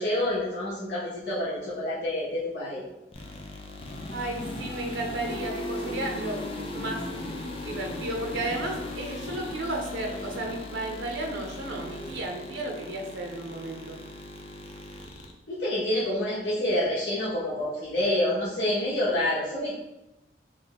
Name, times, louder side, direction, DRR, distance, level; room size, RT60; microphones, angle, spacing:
voice 1, 0.0-2.8 15.5-19.7, left 1 dB, 80° left, -10 dB, 1.0 m, -27 dB
sound 1, 3.1-15.3, left 1 dB, 30° left, 0.4 m, -37 dB
voice 2, 4.1-6.4 6.7-7.0 7.6-14.0, right 2 dB, 85° right, 1 dB, 0.6 m, -33 dB
3.2 x 2.5 x 3.9 m, 0.97 s
head